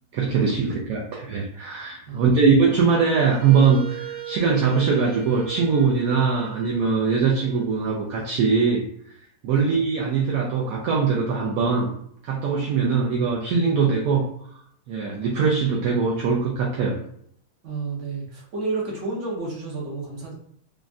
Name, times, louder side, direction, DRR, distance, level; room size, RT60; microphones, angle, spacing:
voice 1, 0.1-8.8 9.4-11.9 12.2-14.2 14.9-17.0, right 5 dB, 70° right, -2 dB, 0.9 m, -21 dB
voice 2, 2.1-2.4 9.5-9.6 17.6-20.3, right 3 dB, 55° right, -3 dB, 1.1 m, -31 dB
Wind instrument woodwind instrument, 3.1-8.1, right 8 dB, 90° right, 1.5 m, -38 dB
3.4 x 2.1 x 2.5 m, 0.70 s
omnidirectional pair, 1.8 m